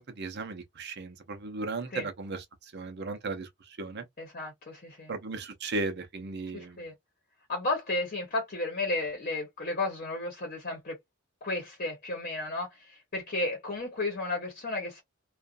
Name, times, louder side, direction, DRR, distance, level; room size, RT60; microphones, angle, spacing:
voice 1, 0.2-2.4 2.7-3.5 3.8-4.0 5.1-6.8, right 3 dB, 55° right, 0.7 m, -36 dB
voice 2, 4.2-5.1 6.5-6.9 7.5-11.0 11.4-15.0, left 2 dB, 45° left, 0.9 m, -33 dB
2.5 x 2.3 x 2.4 m
head